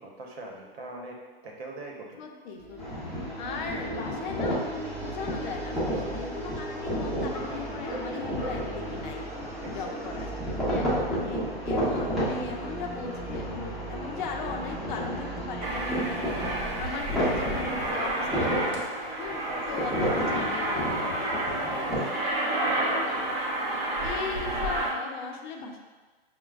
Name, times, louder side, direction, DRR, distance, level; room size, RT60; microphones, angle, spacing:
voice 1, 0.0-2.2 5.9-6.5 7.5-8.0 9.6-10.2 11.4-11.7 16.2-16.6 19.4-20.2 22.5-23.3, right 1 dB, 80° right, 0 dB, 0.9 m, -42 dB
voice 2, 2.2-3.0 3.4-9.2 9.7-10.3 10.7-16.2 16.8-18.7 19.2-21.9 22.2-22.3 22.8-23.0 24.0-25.8, left 5 dB, 50° left, 2 dB, 0.6 m, -38 dB
sound 1, 2.5-16.8, right 2 dB, 20° right, 0.3 m, -39 dB
sound 2, 2.8-22.0, equal, ahead, 0.8 m, -33 dB
Aircraft, 15.6-24.9, right 1 dB, 50° right, 0.8 m, -30 dB
5.9 x 2.1 x 2.3 m, 1.4 s
hypercardioid pair, 145°, 31 cm